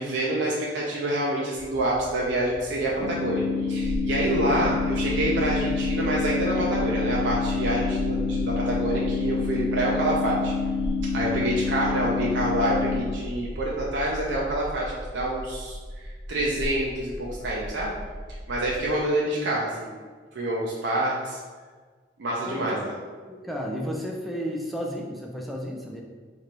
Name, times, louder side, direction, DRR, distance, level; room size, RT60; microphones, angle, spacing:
voice 1, 0.0-10.5 11.1-17.9 18.5-19.9 20.3-21.4 22.2-22.9, right 1 dB, 80° right, -4 dB, 0.5 m, -27 dB
sound 1, 1.5-18.8, equal, 15° right, 0.9 m, -36 dB
sound 2, 3.0-13.0, left 5 dB, 65° left, 1.0 m, -28 dB
voice 2, 11.1-11.5 22.5-22.8 23.3-26.0, equal, ahead, -1 dB, 0.4 m, -33 dB
3.1 x 2.6 x 4.3 m, 1.5 s
head